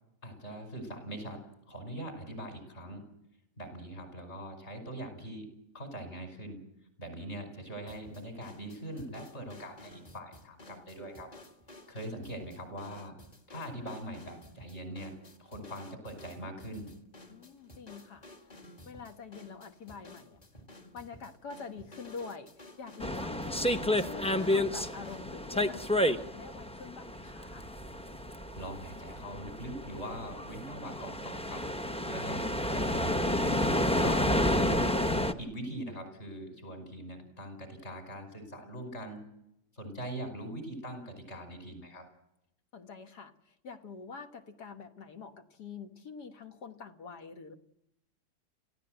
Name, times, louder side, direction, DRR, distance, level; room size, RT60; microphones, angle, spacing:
voice 1, 0.2-3.0 3.6-5.5 5.7-6.6 7.0-11.3 11.9-13.1 13.5-15.1 15.4-16.9 28.6-31.7 32.0-32.5 32.7-34.9 35.4-39.2 39.7-42.1, right 1 dB, 40° left, 6 dB, 5.4 m, -42 dB
sound 1, 7.9-25.3, left 1 dB, 25° left, 1.8 m, -53 dB
voice 2, 17.3-18.3 18.9-20.4 20.9-27.7 31.5-31.8 42.7-47.5, left 5 dB, 80° left, 6 dB, 1.9 m, -46 dB
sound 2, 23.0-35.3, left 1 dB, 5° left, 0.5 m, -30 dB
27.5 x 15.5 x 7.9 m, 0.84 s
omnidirectional pair, 1.7 m